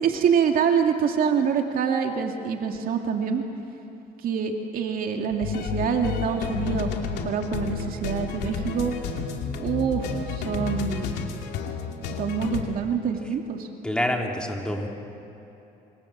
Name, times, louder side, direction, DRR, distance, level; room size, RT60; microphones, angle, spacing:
voice 1, 0.0-3.4 4.2-9.0 9.6-11.2 12.2-13.7, right 6 dB, 60° right, 3 dB, 2.4 m, -25 dB
sound 1, 5.3-12.6, left 6 dB, 85° left, 2.7 m, -31 dB
voice 2, 13.8-14.9, left 1 dB, 5° left, 1 dB, 3.2 m, -27 dB
27.0 x 26.0 x 7.5 m, 3.0 s
cardioid pair, 110°, 17 cm